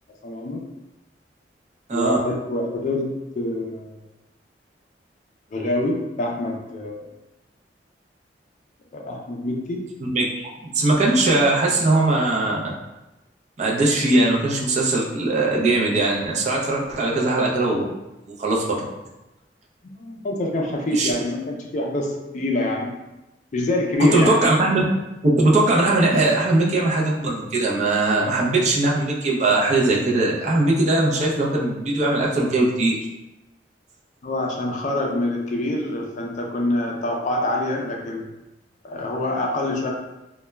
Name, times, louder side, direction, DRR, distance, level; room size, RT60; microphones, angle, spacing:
voice 1, 0.2-0.6 1.9-3.1 3.3-3.9 5.5-7.1 8.9-9.8 20.0-22.9 23.5-24.3 34.2-38.2 38.8-39.9, left 1 dB, 45° left, 1 dB, 0.3 m, -25 dB
voice 2, 10.1-12.7 13.6-17.8 18.4-18.8 20.9-21.1 24.0-24.9 25.2-33.0, right 2 dB, 40° right, -2 dB, 0.4 m, -20 dB
2.1 x 2.0 x 3.2 m, 1.0 s
head